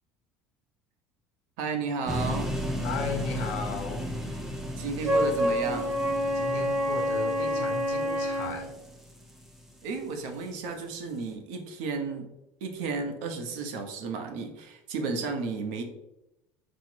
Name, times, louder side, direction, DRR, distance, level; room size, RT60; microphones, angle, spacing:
voice 1, 1.6-2.5 4.8-5.9 9.8-12.3 12.6-15.8, right 4 dB, 80° right, 5 dB, 0.8 m, -33 dB
sound 1, 2.1-10.1, equal, 5° right, 0.4 m, -35 dB
voice 2, 2.8-4.2 6.3-8.7, left 4 dB, 85° left, 4 dB, 0.8 m, -35 dB
Wind instrument woodwind instrument, 5.0-8.6, equal, 40° right, 1.3 m, -27 dB
4.4 x 2.1 x 4.4 m, 0.88 s
cardioid pair, 165°, 6 cm